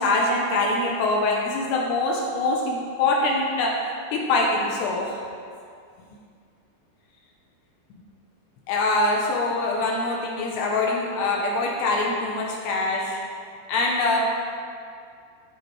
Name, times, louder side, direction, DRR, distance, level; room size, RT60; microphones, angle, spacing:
voice 1, 0.0-3.7 4.1-5.2 8.7-13.2 13.7-14.2, left 2 dB, 80° left, -2 dB, 2.7 m, -24 dB
12.5 x 4.5 x 3.2 m, 2.3 s
omnidirectional pair, 5.0 m